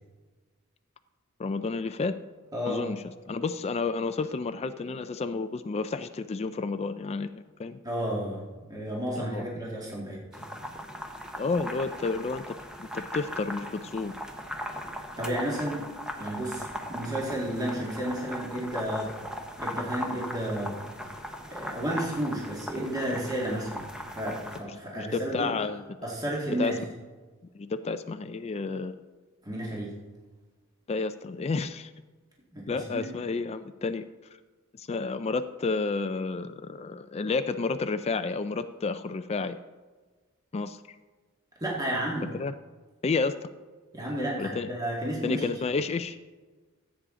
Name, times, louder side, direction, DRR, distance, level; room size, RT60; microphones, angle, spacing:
voice 1, 1.4-2.1 2.7-7.8 9.2-9.4 11.4-12.4 12.8-14.1 24.6-25.8 26.6-26.7 27.5-28.9 30.9-31.9 32.7-34.1 34.8-39.6 40.5-40.8 42.3-42.5 43.0-43.5 44.4-44.7 45.2-46.2, left 4 dB, 30° left, 9 dB, 0.4 m, -31 dB
voice 2, 2.5-2.9 7.8-10.5 15.2-15.9 16.2-19.1 19.6-20.8 21.5-25.5 26.0-26.8 29.4-30.0 32.5-33.1 41.6-42.3 43.9-45.5, right 1 dB, 20° right, -4 dB, 1.9 m, -32 dB
sound 1, 10.3-24.6, equal, 5° right, 1.0 m, -39 dB
15.0 x 8.2 x 3.7 m, 1.3 s
head